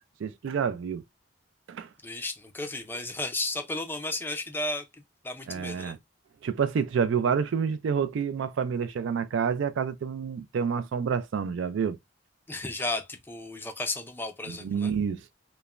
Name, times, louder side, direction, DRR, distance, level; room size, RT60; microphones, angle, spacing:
voice 1, 0.2-1.0 1.7-1.9 5.5-6.0 6.4-12.0 14.5-15.2, right 6 dB, 65° right, 0.3 m, -28 dB
voice 2, 2.0-4.9 5.2-6.0 12.5-14.9, left 2 dB, 10° left, 0.4 m, -33 dB
3.0 x 2.1 x 2.3 m
head